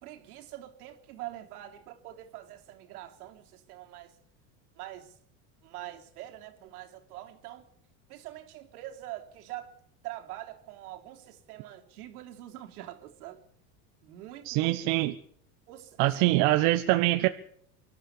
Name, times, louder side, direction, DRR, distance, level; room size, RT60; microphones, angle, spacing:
voice 1, 0.0-4.2 4.8-5.1 5.6-7.7 8.1-9.7 10.0-13.4 14.0-14.8 15.7-16.2, right 14 dB, 85° right, 3.5 m, -44 dB
voice 2, 14.4-15.1 16.0-17.3, right 18 dB, 60° right, 1.3 m, -24 dB
24.5 x 13.0 x 8.5 m
supercardioid pair, 140°, 44 cm